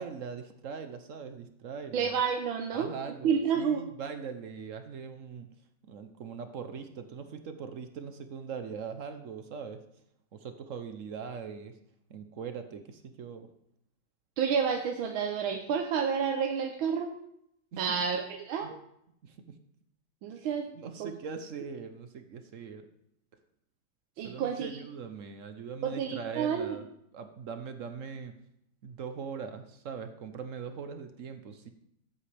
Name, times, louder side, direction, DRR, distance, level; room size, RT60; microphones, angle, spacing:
voice 1, 0.0-2.2 2.7-5.5 5.9-9.8 10.3-11.8 12.1-13.5 17.7-17.9 18.6-18.7 19.2-19.4 20.8-22.9 24.2-26.9 27.1-28.3 28.8-31.7, right 6 dB, 60° right, 8 dB, 0.8 m, -41 dB
voice 2, 1.9-2.9 3.2-3.9 14.4-17.1 17.8-18.8 20.2-20.7 21.0-21.1 24.2-24.8 25.8-26.7, right 7 dB, 80° right, 3 dB, 1.6 m, -30 dB
14.5 x 8.3 x 3.4 m, 0.74 s
omnidirectional pair, 2.2 m